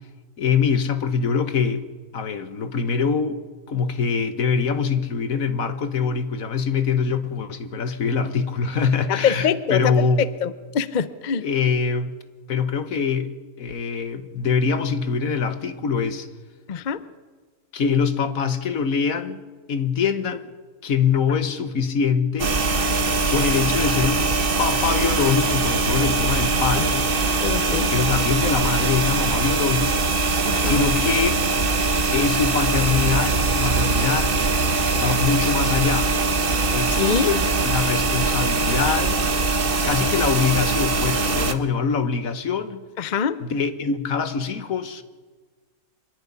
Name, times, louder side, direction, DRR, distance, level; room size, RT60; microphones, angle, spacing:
voice 1, 0.4-1.8 2.1-3.4 3.7-10.2 11.4-12.2 12.5-13.3 13.6-16.3 17.7-19.4 19.7-20.5 20.8-22.5 23.3-27.1 27.9-31.4 32.1-34.4 34.9-36.1 36.7-39.2 39.8-42.8 43.4-45.0, left 6 dB, 65° left, 1.6 m, -24 dB
voice 2, 9.1-11.5 16.7-17.0 26.8-26.9 27.4-27.9 30.5-30.8 36.9-37.3 43.0-43.4, left 7 dB, 45° left, 0.6 m, -24 dB
sound 1, 22.4-41.5, right 3 dB, 40° right, 1.1 m, -22 dB
25.0 x 11.0 x 9.9 m
omnidirectional pair, 1.6 m